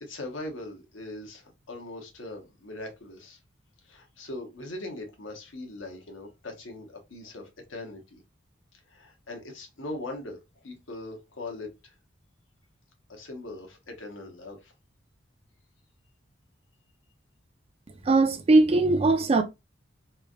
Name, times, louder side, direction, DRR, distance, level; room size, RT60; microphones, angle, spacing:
voice 1, 0.0-3.4 3.8-8.2 8.7-10.4 10.6-11.9 13.1-14.7, left 2 dB, 85° left, 0.9 m, -40 dB
voice 2, 18.0-19.4, right 2 dB, 30° right, 0.4 m, -20 dB
3.2 x 2.4 x 2.2 m
head